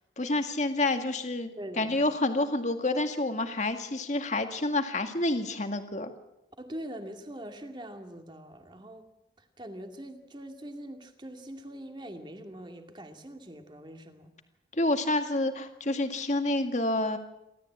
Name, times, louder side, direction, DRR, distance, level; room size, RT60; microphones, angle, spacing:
voice 1, 0.2-1.5 1.8-6.1 14.7-17.2, left 2 dB, 40° left, 6 dB, 2.0 m, -28 dB
voice 2, 1.6-2.0 6.6-9.1 9.4-14.3, right 1 dB, 25° right, 5 dB, 2.2 m, -43 dB
29.0 x 13.0 x 8.7 m, 0.92 s
head